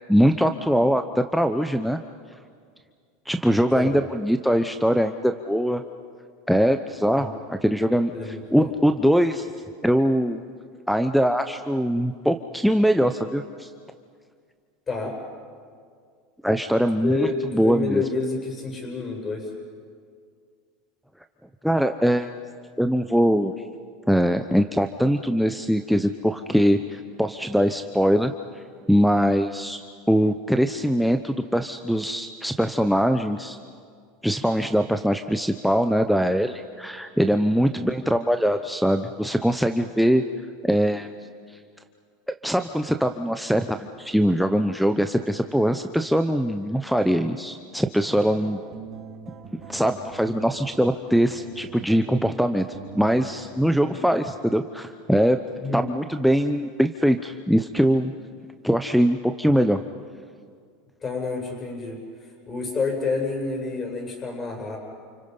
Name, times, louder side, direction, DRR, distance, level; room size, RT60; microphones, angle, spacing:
voice 1, 0.1-2.0 3.3-5.8 6.5-8.1 8.5-9.5 9.8-10.4 10.9-13.7 16.4-18.0 21.6-22.3 22.8-23.5 24.1-28.3 28.9-29.8 30.1-33.6 34.2-40.2 40.6-41.1 42.4-48.6 49.7-52.7 52.9-55.4 55.7-58.1 58.6-59.8, equal, ahead, 8 dB, 0.9 m, -22 dB
voice 2, 8.1-8.7 14.9-15.2 17.0-19.5 37.5-37.8 53.8-53.9 55.6-55.8 61.0-64.8, left 4 dB, 25° left, 0 dB, 7.7 m, -29 dB
sound 1, 48.1-53.4, right 6 dB, 35° right, 5.0 m, -43 dB
29.5 x 29.5 x 5.6 m, 2.1 s
supercardioid pair, 110°, 0 cm